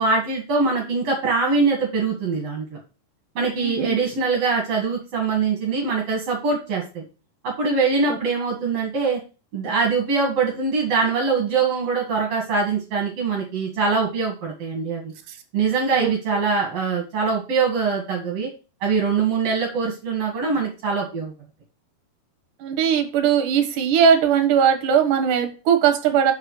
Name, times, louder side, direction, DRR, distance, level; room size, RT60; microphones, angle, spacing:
voice 1, 0.0-2.8 3.4-7.0 7.4-9.2 9.5-15.1 15.5-18.5 18.8-21.3, right 4 dB, 50° right, -1 dB, 2.3 m, -23 dB
voice 2, 3.6-3.9 8.1-8.2 15.3-15.4 15.9-16.4 22.6-26.3, right 7 dB, 65° right, 6 dB, 2.2 m, -20 dB
6.4 x 4.8 x 6.5 m, 0.32 s
omnidirectional pair, 4.9 m